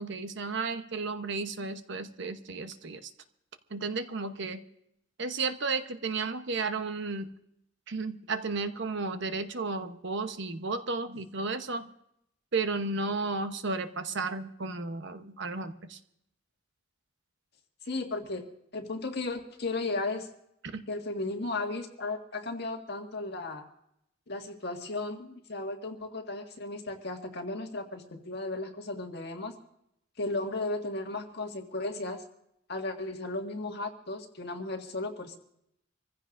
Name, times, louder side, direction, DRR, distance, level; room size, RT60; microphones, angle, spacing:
voice 1, 0.0-3.1 3.7-4.6 5.2-7.3 7.9-11.9 12.5-16.0 20.6-20.8, right 3 dB, 65° right, 9 dB, 0.9 m, -33 dB
voice 2, 17.9-18.5 18.7-20.3 20.9-23.7 24.3-29.5 30.2-32.2 32.7-35.4, left 2 dB, 55° left, 2 dB, 1.8 m, -35 dB
26.0 x 15.5 x 2.6 m, 0.76 s
head